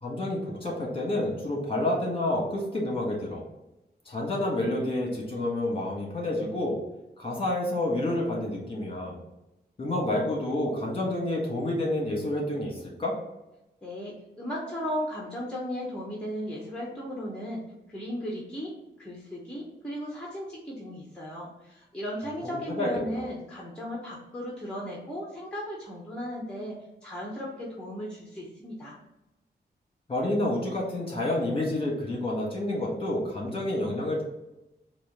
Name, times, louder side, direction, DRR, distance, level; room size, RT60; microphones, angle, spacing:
voice 1, 0.0-3.4 4.1-6.8 7.2-9.2 9.8-13.2 22.4-22.9 30.1-34.2, left 1 dB, 30° left, -2 dB, 1.5 m, -29 dB
voice 2, 13.8-17.6 17.9-18.7 19.0-29.0, equal, 5° left, -4 dB, 0.9 m, -36 dB
4.4 x 2.5 x 3.7 m, 0.93 s
wide cardioid pair, 135°, 18 cm